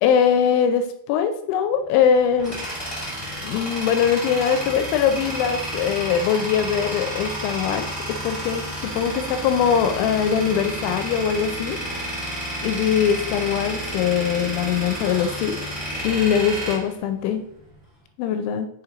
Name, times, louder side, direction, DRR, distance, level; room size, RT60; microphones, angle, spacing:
voice 1, 0.0-2.6 3.4-11.8 12.6-15.6 16.0-17.5 18.2-18.7, left 7 dB, 85° left, 8 dB, 2.9 m, -22 dB
Tools, 1.9-17.7, equal, 55° left, 0.3 m, -31 dB
6.6 x 4.3 x 3.8 m, 0.71 s
omnidirectional pair, 5.4 m